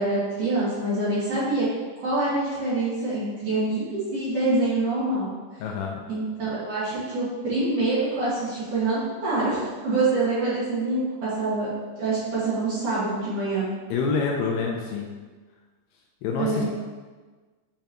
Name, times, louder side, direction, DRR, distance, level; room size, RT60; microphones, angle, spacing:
voice 1, 0.0-1.7 2.0-5.3 6.1-11.7 12.0-13.7 16.4-16.7, right 2 dB, 55° right, -11 dB, 2.9 m, -25 dB
voice 2, 5.6-6.0 13.9-15.1 16.2-16.7, left 5 dB, 80° left, 0 dB, 2.4 m, -27 dB
8.7 x 5.3 x 3.0 m, 1.4 s
omnidirectional pair, 5.1 m